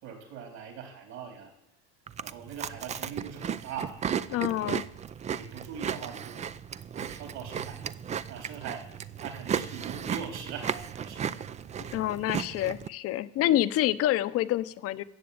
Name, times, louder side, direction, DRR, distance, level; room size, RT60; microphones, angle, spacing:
voice 1, 0.0-1.5 2.2-4.0 4.4-4.7 5.3-6.4 6.9-7.9 8.3-8.9 9.2-11.3, right 7 dB, 60° right, 4 dB, 4.3 m, -41 dB
Chewing mastication, 2.1-12.9, right 8 dB, 25° right, 0.4 m, -35 dB
voice 2, 4.3-4.8 11.9-15.0, left 13 dB, 50° left, 14 dB, 0.8 m, -27 dB
14.0 x 7.8 x 8.8 m, 0.81 s
supercardioid pair, 125°, 30 cm